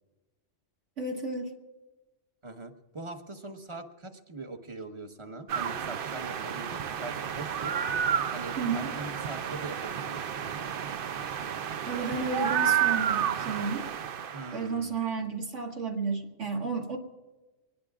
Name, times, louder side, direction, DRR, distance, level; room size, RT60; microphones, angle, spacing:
voice 1, 1.0-1.5 8.6-8.9 11.9-13.9 14.5-17.0, right 4 dB, 70° right, 1 dB, 2.0 m, -32 dB
voice 2, 2.4-7.8 8.3-10.3 14.3-15.0, right 2 dB, 25° right, 6 dB, 1.1 m, -42 dB
sound 1, 5.5-14.6, right 9 dB, 55° right, 0.7 m, -31 dB
25.0 x 20.0 x 2.4 m, 1.2 s
omnidirectional pair, 1.3 m